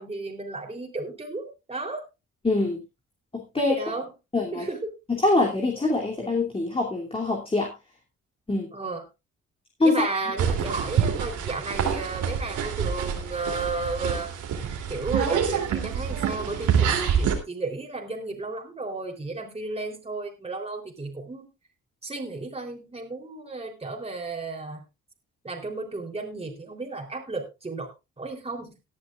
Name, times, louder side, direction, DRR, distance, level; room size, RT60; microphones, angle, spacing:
voice 1, 0.0-2.0 3.6-4.1 4.5-4.9 8.7-9.0 9.8-14.3 14.9-21.5 22.0-24.8 25.4-27.9 28.2-28.8, right 3 dB, 20° right, 2 dB, 3.6 m, -33 dB
voice 2, 2.4-2.8 3.3-3.8 4.3-4.6 5.1-7.7 8.5-8.7 9.8-10.0, left 2 dB, 20° left, 0 dB, 2.9 m, -24 dB
sound 1, 10.4-17.4, right 7 dB, 80° right, 3.2 m, -26 dB
18.5 x 10.5 x 2.5 m, 0.26 s
cardioid pair, 90°, 30 cm